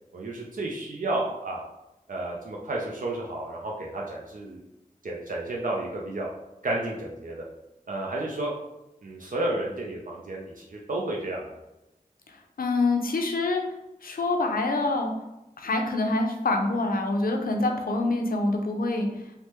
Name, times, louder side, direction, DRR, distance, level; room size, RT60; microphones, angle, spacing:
voice 1, 0.1-1.6 2.1-4.6 5.0-6.3 6.6-7.5 7.9-8.5 9.0-11.6, right 2 dB, 65° right, -2 dB, 0.5 m, -31 dB
voice 2, 12.3-13.6 14.0-15.1 15.6-19.2, left 2 dB, 80° left, 3 dB, 0.5 m, -26 dB
3.3 x 2.1 x 2.9 m, 0.94 s
wide cardioid pair, 50°, 15 cm